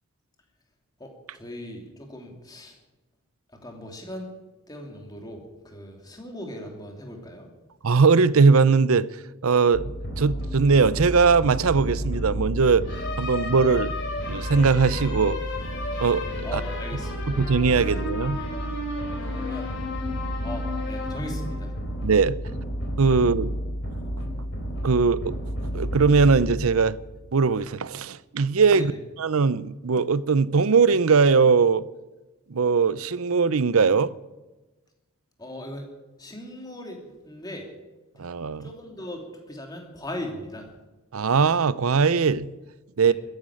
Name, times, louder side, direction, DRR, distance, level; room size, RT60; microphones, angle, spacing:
voice 1, 1.0-2.8 3.6-4.3 4.7-7.5 16.4-17.3 19.2-19.7 20.4-21.8 23.1-23.2 28.7-29.0 35.4-35.9 36.2-37.0 37.2-37.7 38.6-40.7 43.1-43.2, left 1 dB, 20° left, 2.8 m, -38 dB
voice 2, 7.8-9.1 9.4-12.9 13.2-13.9 14.3-15.4 16.0-16.2 16.5-16.6 17.3-18.4 22.0-22.4 23.0-23.5 24.8-25.3 25.7-27.0 27.3-28.9 29.2-31.8 32.5-34.1 38.2-38.7 41.1-42.5 43.0-43.1, right 5 dB, 75° right, 0.6 m, -20 dB
sound 1, 9.7-27.3, equal, 55° left, 4.0 m, -31 dB
14.0 x 10.5 x 9.9 m
head